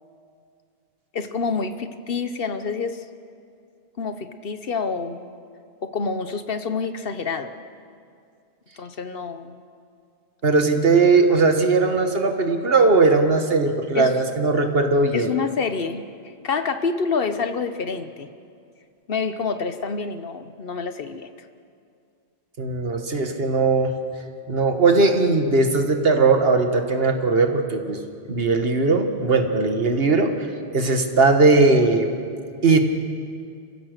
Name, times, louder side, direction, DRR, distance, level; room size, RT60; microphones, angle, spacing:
voice 1, 1.1-3.0 4.0-5.3 5.8-7.5 8.8-9.6 13.9-14.1 15.1-18.3 19.1-21.3, left 5 dB, 60° left, 9 dB, 1.1 m, -27 dB
voice 2, 10.4-15.3 22.6-23.9 24.5-28.0 28.3-32.1 32.6-32.9, right 3 dB, 60° right, 6 dB, 1.8 m, -19 dB
29.5 x 15.5 x 6.7 m, 2.4 s
omnidirectional pair, 1.1 m